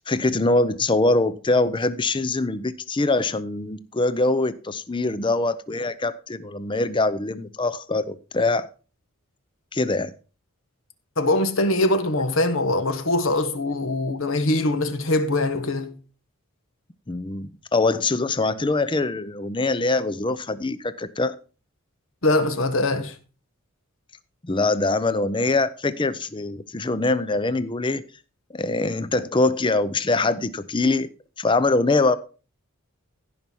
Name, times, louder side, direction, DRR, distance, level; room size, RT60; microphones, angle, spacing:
voice 1, 0.1-8.7 9.7-10.1 17.1-21.3 24.4-28.0 28.5-31.1 31.4-32.2, left 2 dB, 20° left, 0.6 m, -23 dB
voice 2, 11.2-15.9 22.2-23.1, left 2 dB, 65° left, 1.5 m, -22 dB
16.0 x 5.7 x 4.6 m
head